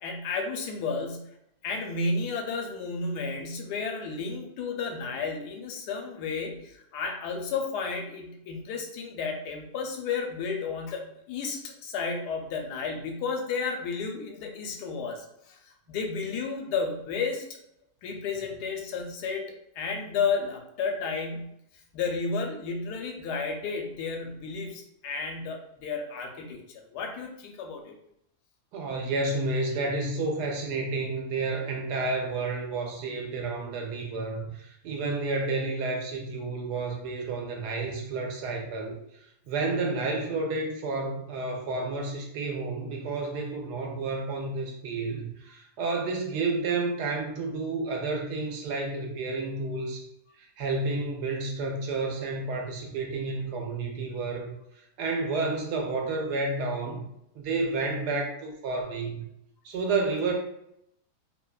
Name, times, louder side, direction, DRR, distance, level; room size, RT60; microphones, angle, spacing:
voice 1, 0.0-1.2 1.6-17.4 18.0-19.4 19.8-21.5 21.9-26.6 26.9-27.9, left 4 dB, 90° left, 2 dB, 1.2 m, -32 dB
voice 2, 28.7-39.0 39.5-50.0 50.4-54.5 55.0-57.0 57.3-59.2 59.6-60.3, right 3 dB, 90° right, 1 dB, 1.2 m, -30 dB
3.0 x 2.2 x 2.3 m, 0.77 s
omnidirectional pair, 1.7 m